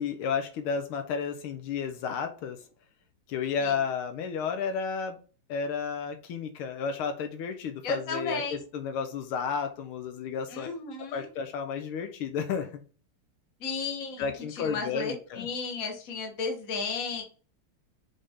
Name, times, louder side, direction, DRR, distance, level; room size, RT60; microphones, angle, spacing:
voice 1, 0.0-2.6 3.3-5.2 5.5-10.7 11.1-12.8 14.2-15.5, left 6 dB, 85° left, 6 dB, 1.7 m, -32 dB
voice 2, 7.8-8.6 10.5-11.2 13.6-17.2, left 4 dB, 45° left, 2 dB, 1.7 m, -34 dB
7.6 x 4.0 x 3.6 m, 0.38 s
omnidirectional pair, 2.3 m